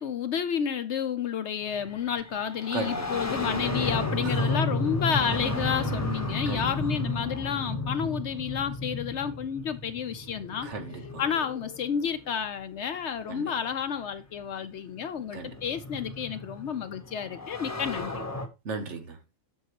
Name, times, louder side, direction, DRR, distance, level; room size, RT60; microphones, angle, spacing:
voice 1, 0.0-10.7 11.2-18.2, left 7 dB, 65° left, 0.9 m, -31 dB
sound 1, 1.7-12.3 13.6-13.7 14.7-18.5, left 2 dB, 15° left, 1.0 m, -33 dB
voice 2, 2.7-3.2 4.2-4.6 6.5-6.7 10.6-11.2 13.3-13.5 15.3-15.6 18.6-19.2, right 4 dB, 65° right, 1.3 m, -36 dB
7.9 x 6.5 x 3.0 m
omnidirectional pair, 1.3 m